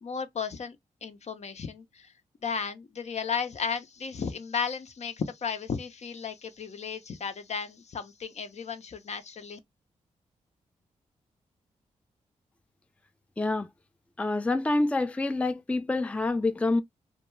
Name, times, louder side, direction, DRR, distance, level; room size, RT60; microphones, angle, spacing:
voice 1, 0.0-2.1 2.4-9.6, left 6 dB, 55° left, 0.6 m, -34 dB
voice 2, 13.4-13.7 14.2-16.8, left 2 dB, 10° left, 0.4 m, -27 dB
2.2 x 2.2 x 3.0 m
supercardioid pair, 45°, 14 cm